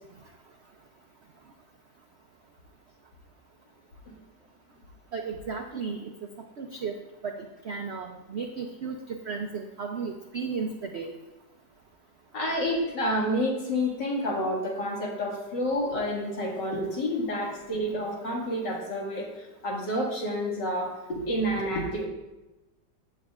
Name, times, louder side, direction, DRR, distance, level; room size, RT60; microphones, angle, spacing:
voice 1, 5.1-6.1 6.6-6.9 7.2-9.0 9.2-11.1, right 5 dB, 65° right, 3 dB, 0.6 m, -34 dB
voice 2, 12.3-22.1, equal, 75° left, -2 dB, 2.7 m, -29 dB
15.5 x 8.2 x 2.4 m, 1.0 s
omnidirectional pair, 1.9 m